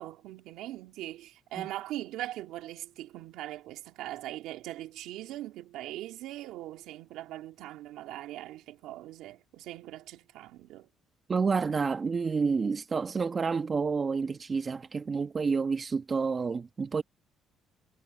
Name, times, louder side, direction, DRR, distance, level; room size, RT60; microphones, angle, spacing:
voice 1, 0.0-10.9, right 15 dB, 80° right, 3.1 m, -41 dB
voice 2, 11.3-17.0, right 5 dB, 35° right, 1.4 m, -29 dB
cardioid pair, 85°, 0 cm